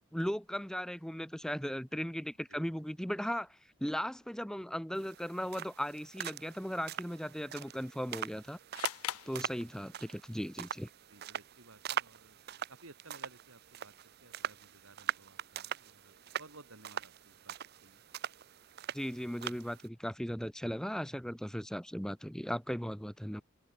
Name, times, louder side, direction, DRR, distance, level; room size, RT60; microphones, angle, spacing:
voice 1, 0.1-8.6 9.3-10.9 18.9-23.4, equal, 5° left, 1.1 m, -37 dB
sound 1, 5.0-19.9, right 9 dB, 45° right, 0.5 m, -43 dB
sound 2, 8.7-10.2, left 12 dB, 90° left, 0.6 m, -41 dB
voice 2, 11.1-12.4 12.7-17.5 17.8-18.0, right 2 dB, 75° right, 6.2 m, -57 dB
head